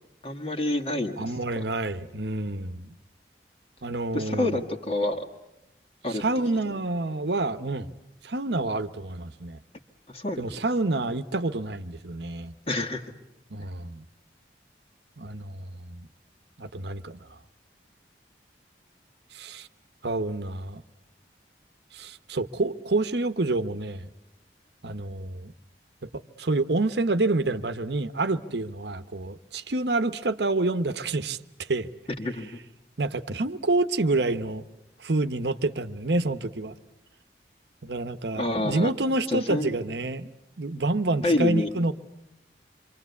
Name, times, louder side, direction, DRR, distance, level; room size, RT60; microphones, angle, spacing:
voice 1, 0.2-1.6 4.1-5.3 6.0-6.2 6.6-6.8 10.1-10.4 12.7-13.1 32.2-32.6 38.4-38.9 39.3-39.8 41.2-41.7, left 1 dB, 35° left, 4 dB, 2.0 m, -28 dB
voice 2, 1.2-3.0 3.8-4.6 6.1-7.9 8.2-9.6 10.4-12.5 13.5-14.1 15.2-16.1 16.6-17.3 19.3-19.7 20.0-20.8 21.9-24.1 24.8-25.5 26.1-31.4 31.7-31.9 33.0-34.6 35.0-36.8 37.8-40.3 40.6-41.9, right 2 dB, 70° right, 12 dB, 1.0 m, -28 dB
27.0 x 25.0 x 8.4 m, 0.90 s
head